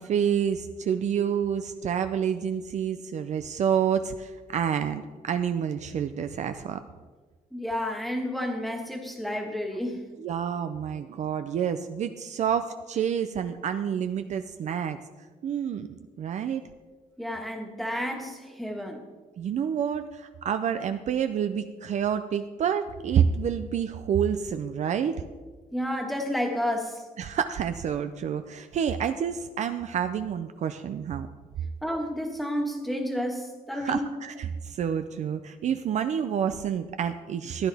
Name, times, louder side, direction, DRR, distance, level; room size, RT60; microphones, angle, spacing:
voice 1, 0.0-6.8 10.2-15.0 15.4-15.9 16.2-16.7 19.4-25.2 27.2-31.3 33.7-37.7, right 8 dB, 50° right, 9 dB, 0.5 m, -28 dB
voice 2, 7.5-10.0 17.2-19.0 25.7-27.0 31.8-34.0, equal, ahead, 1 dB, 1.7 m, -31 dB
15.0 x 10.5 x 3.5 m, 1.4 s
cardioid pair, 140°, 15 cm